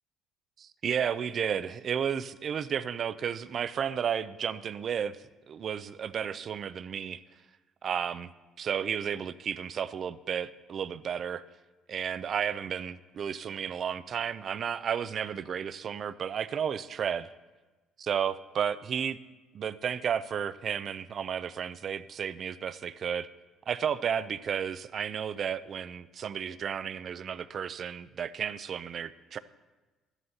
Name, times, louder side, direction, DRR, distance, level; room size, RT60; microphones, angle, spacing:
voice 1, 0.6-5.2 5.5-7.2 7.8-8.3 8.6-11.4 11.9-17.3 18.0-19.2 19.5-23.3 23.7-29.4, right 8 dB, 50° right, 15 dB, 0.4 m, -32 dB
13.0 x 11.0 x 2.8 m, 1.2 s
cardioid pair, 95°, 0 cm